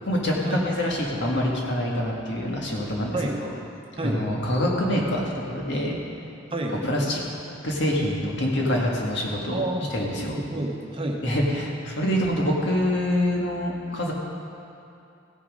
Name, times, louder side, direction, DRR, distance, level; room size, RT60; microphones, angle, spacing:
voice 1, 0.0-3.5 4.0-6.0 6.8-7.2 7.6-9.7 9.9-10.4 11.2-14.1, equal, 65° left, -2 dB, 1.8 m, -25 dB
voice 2, 6.5-6.9 9.5-9.9 10.5-11.2, right 1 dB, 30° right, 1 dB, 1.0 m, -28 dB
15.5 x 6.7 x 5.3 m, 2.7 s
head